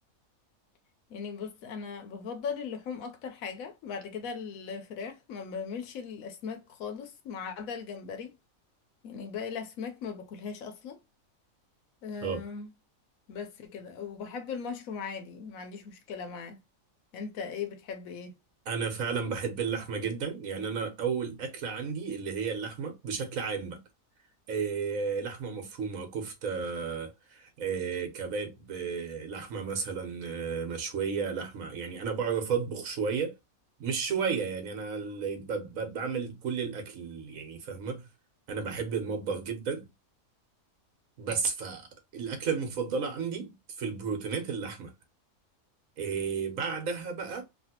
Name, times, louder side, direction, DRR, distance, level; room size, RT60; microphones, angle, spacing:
voice 1, 1.1-8.4 9.0-11.0 12.0-12.7 13.3-16.6 17.1-18.3, left 6 dB, 80° left, 1.1 m, -38 dB
voice 2, 18.6-23.8 24.5-33.3 33.8-38.1 38.5-39.9 41.2-41.9 42.1-43.5 43.8-44.9 46.0-47.4, right 6 dB, 75° right, 1.4 m, -33 dB
3.2 x 2.5 x 2.8 m
omnidirectional pair, 1.4 m